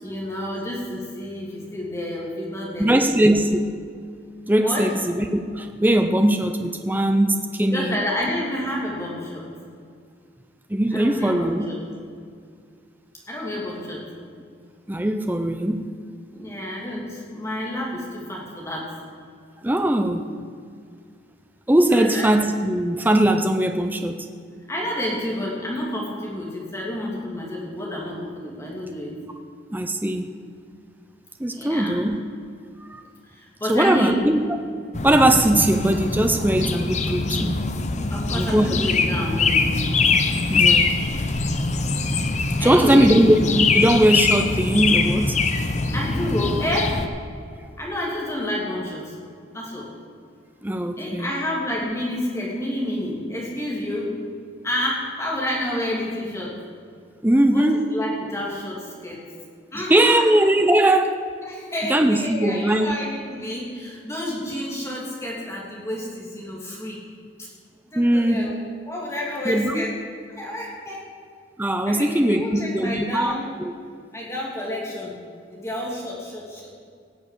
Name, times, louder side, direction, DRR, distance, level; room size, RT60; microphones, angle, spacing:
voice 1, 0.0-3.4 4.6-4.9 7.7-9.5 10.9-11.8 13.3-14.0 16.3-18.9 21.9-22.3 24.7-29.1 31.5-32.0 33.3-34.4 38.1-39.7 42.6-43.2 45.9-47.0 47.8-49.1 49.5-49.9 51.0-54.2 54.6-56.5 57.5-59.2 59.7-60.3 61.4-67.0 67.4-67.5 67.9-69.9 70.4-71.0 71.9-73.5 74.1-75.2 75.5-76.7, left 1 dB, 15° left, -3 dB, 2.7 m, -29 dB
voice 2, 2.8-3.6 4.5-8.0 10.7-11.7 14.9-15.9 19.6-20.3 21.7-24.3 29.7-30.4 31.4-32.2 32.9-33.0 33.7-34.4 35.0-37.6 38.3-38.8 40.5-41.0 42.6-45.4 50.6-51.3 57.2-57.9 59.7-61.2 61.8-62.9 68.0-68.6 69.4-69.9 71.6-73.3 73.6-73.7, right 1 dB, 10° right, 7 dB, 0.5 m, -20 dB
sound 1, 34.9-47.1, left 4 dB, 35° left, 0.8 m, -23 dB
17.5 x 7.0 x 8.4 m, 2.2 s
head